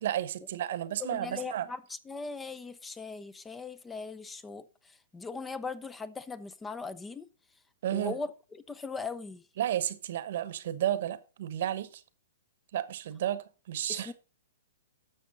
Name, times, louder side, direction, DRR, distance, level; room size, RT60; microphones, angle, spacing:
voice 1, 0.0-1.7 7.8-8.1 9.6-12.0 12.7-14.1, right 11 dB, 60° right, 1.1 m, -32 dB
voice 2, 1.0-7.3 7.9-9.5 13.9-14.1, left 4 dB, 10° left, 0.6 m, -39 dB
11.5 x 6.7 x 4.0 m
hypercardioid pair, 130°, 0 cm